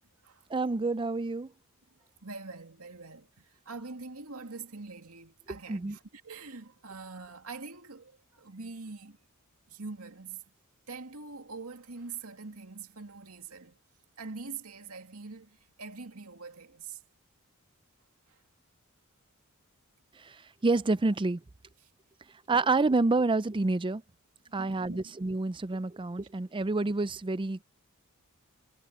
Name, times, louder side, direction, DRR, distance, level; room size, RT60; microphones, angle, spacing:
voice 1, 0.5-1.5 5.7-6.0 20.2-21.4 22.5-24.0 24.5-27.6, right 3 dB, 25° right, 0.5 m, -28 dB
voice 2, 1.9-9.2 9.7-10.4 10.9-13.8 14.2-17.0 18.3-18.4 21.8-21.9 24.5-25.1, right 4 dB, 80° right, 2.5 m, -44 dB
head